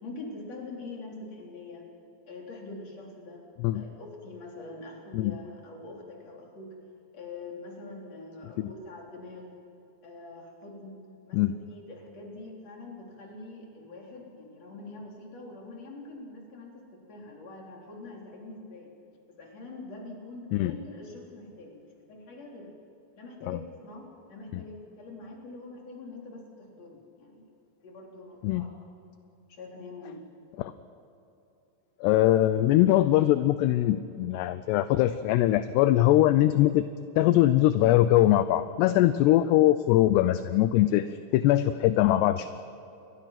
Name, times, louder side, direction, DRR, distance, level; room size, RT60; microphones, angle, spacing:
voice 1, 0.0-1.9 2.3-3.4 3.7-6.8 7.1-9.5 10.0-18.9 19.3-22.7 23.2-27.5 27.8-28.7 29.5-30.3, left 2 dB, 40° left, -1 dB, 4.6 m, -44 dB
voice 2, 32.0-36.9 37.2-42.5, left 14 dB, 80° left, 12 dB, 2.7 m, -22 dB
29.5 x 22.5 x 5.9 m, 2.9 s
omnidirectional pair, 5.1 m